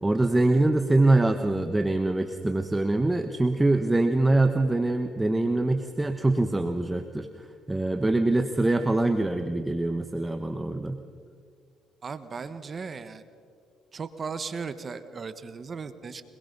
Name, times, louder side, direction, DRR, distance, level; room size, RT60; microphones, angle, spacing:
voice 1, 0.0-11.0, right 2 dB, 10° right, 7 dB, 1.1 m, -24 dB
voice 2, 12.0-13.2 13.9-16.2, right 5 dB, 40° right, 11 dB, 1.2 m, -36 dB
24.0 x 21.5 x 5.4 m, 2.2 s
cardioid pair, 85°, 0 cm